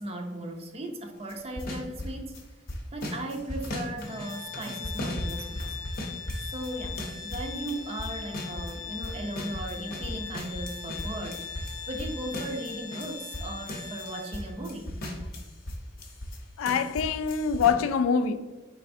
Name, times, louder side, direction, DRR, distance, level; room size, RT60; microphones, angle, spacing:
voice 1, 0.0-2.4 2.9-5.8 6.4-11.5 11.9-15.0, right 1 dB, 30° right, 0.5 m, -37 dB
sound 1, 1.3-2.4 2.7-8.7 9.0-16.4 16.7-17.7, left 1 dB, 45° left, 0.7 m, -37 dB
Organ, 4.0-14.7, left 7 dB, 15° left, 0.7 m, -41 dB
voice 2, 16.6-18.4, left 6 dB, 80° left, 0.3 m, -25 dB
4.2 x 3.2 x 2.6 m
head